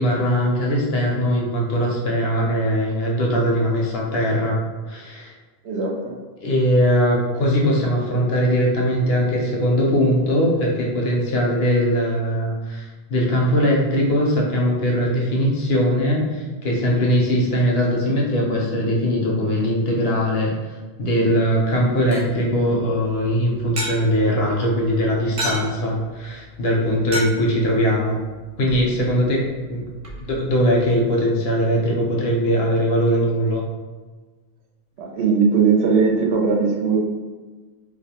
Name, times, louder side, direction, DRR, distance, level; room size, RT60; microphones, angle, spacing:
voice 1, 0.0-4.6 4.9-5.3 6.4-20.5 21.0-28.2 28.6-29.4 29.7-29.8 30.3-33.6, equal, 75° left, -2 dB, 0.8 m, -20 dB
voice 2, 5.6-6.2 35.0-37.0, right 5 dB, 80° right, 0 dB, 0.8 m, -19 dB
sound 1, 21.6-30.9, equal, 50° right, 0.4 m, -35 dB
2.4 x 2.1 x 2.7 m, 1.3 s
omnidirectional pair, 1.1 m